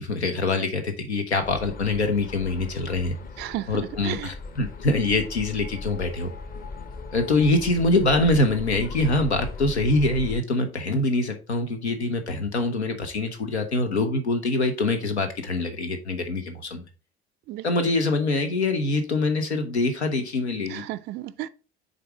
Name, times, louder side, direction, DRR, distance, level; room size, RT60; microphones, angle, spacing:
voice 1, 0.0-3.1 3.7-6.3 7.1-16.9 17.6-20.8, left 2 dB, 80° left, 0.8 m, -24 dB
sound 1, 1.4-10.4, left 3 dB, 25° left, 0.9 m, -38 dB
voice 2, 3.4-4.3 17.5-17.9 20.7-21.5, right 14 dB, 35° right, 0.4 m, -34 dB
6.7 x 3.8 x 4.7 m
figure-of-eight pair, 65°, 33 cm